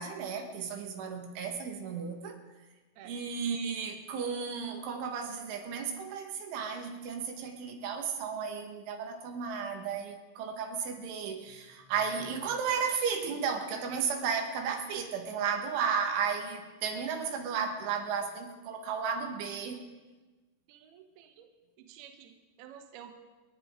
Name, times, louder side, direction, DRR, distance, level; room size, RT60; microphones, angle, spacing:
voice 1, 0.0-2.4 3.1-19.8, right 6 dB, 85° right, 4 dB, 4.0 m, -34 dB
voice 2, 20.7-21.5 21.8-23.1, right 9 dB, 70° right, 5 dB, 2.7 m, -51 dB
28.5 x 10.5 x 3.7 m, 1.2 s
omnidirectional pair, 5.4 m